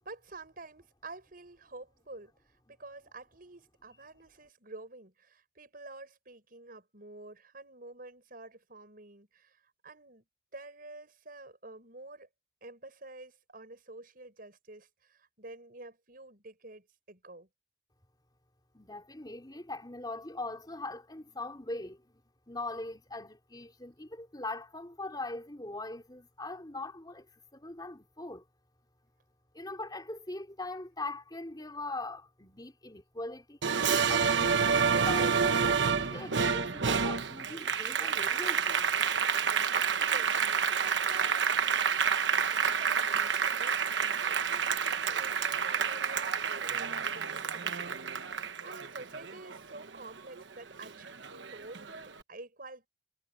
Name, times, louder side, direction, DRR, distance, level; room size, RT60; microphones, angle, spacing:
voice 1, 0.0-2.3 2.7-9.6 9.8-10.2 10.5-12.3 12.6-17.5 40.1-41.6 42.6-52.9, right 2 dB, 50° right, 6.4 m, -49 dB
voice 2, 18.7-22.0 22.5-27.2 27.5-28.4 29.5-38.8, left 2 dB, 20° left, 3.9 m, -41 dB
Applause, 33.6-50.4 50.8-52.0, right 6 dB, 70° right, 1.2 m, -29 dB
head